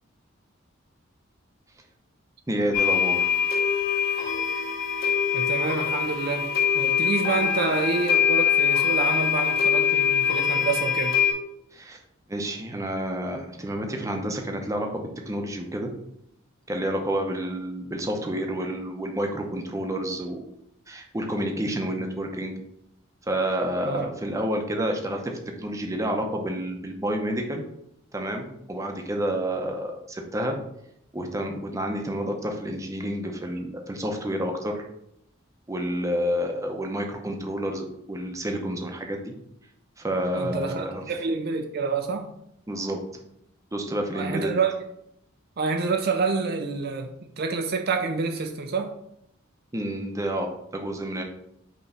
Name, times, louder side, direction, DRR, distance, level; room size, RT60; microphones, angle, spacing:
voice 1, 2.5-3.4 11.7-12.0 12.3-15.9 16.7-20.4 20.9-22.5 23.3-25.3 25.6-27.6 28.1-30.6 31.1-34.9 35.7-39.3 40.0-41.0 42.7-43.0 43.7-44.5 49.7-51.2, equal, 15° right, 0.7 m, -29 dB
sound 1, 2.7-11.3, left 8 dB, 50° left, 1.9 m, -23 dB
voice 2, 5.3-11.2 23.9-24.1 40.3-42.3 44.1-44.8 45.6-47.1 47.4-48.9, right 4 dB, 50° right, 0.5 m, -28 dB
5.5 x 3.1 x 5.6 m
head